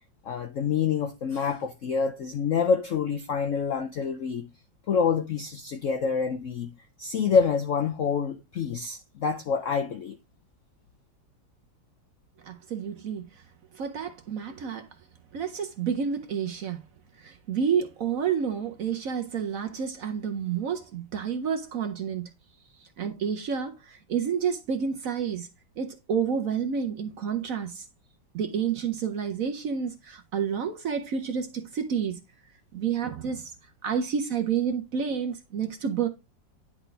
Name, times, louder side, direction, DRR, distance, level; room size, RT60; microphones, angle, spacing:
voice 1, 0.2-4.5 4.9-6.7 7.0-10.2, left 6 dB, 70° left, 0.7 m, -27 dB
voice 2, 12.4-13.3 13.7-14.9 15.3-16.8 17.2-22.3 23.0-25.5 25.8-27.9 28.3-32.2 32.7-33.5 33.8-36.1, right 7 dB, 60° right, 0.9 m, -29 dB
10.5 x 4.2 x 3.3 m
omnidirectional pair, 2.0 m